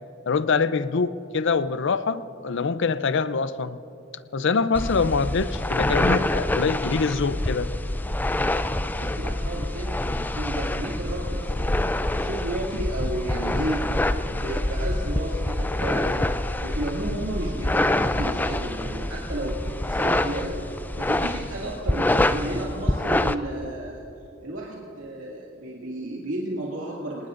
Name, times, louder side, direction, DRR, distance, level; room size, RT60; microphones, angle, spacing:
voice 1, 0.3-3.8 4.3-7.7, left 4 dB, 65° left, 13 dB, 0.6 m, -24 dB
sound 1, 4.7-23.3, left 1 dB, 10° left, 0.4 m, -26 dB
voice 2, 9.0-16.3 16.6-24.0 24.4-27.3, right 1 dB, 85° right, -5 dB, 2.3 m, -33 dB
27.5 x 19.0 x 2.6 m, 2.8 s
head